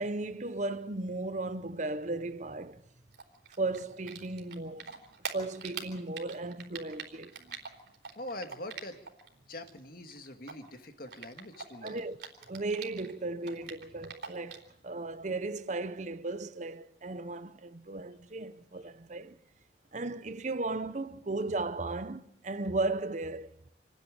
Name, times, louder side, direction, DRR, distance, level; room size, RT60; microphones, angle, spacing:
voice 1, 0.0-2.8 3.6-4.9 5.3-7.6 11.8-12.2 12.5-19.4 19.9-23.5, right 2 dB, 40° right, 0.8 m, -36 dB
Typing, 3.1-9.3 9.5-13.1 13.4-14.7, right 6 dB, 60° right, 3.9 m, -43 dB
voice 2, 8.2-9.0 9.5-12.1, left 1 dB, 50° left, 2.0 m, -43 dB
28.5 x 10.5 x 9.9 m
head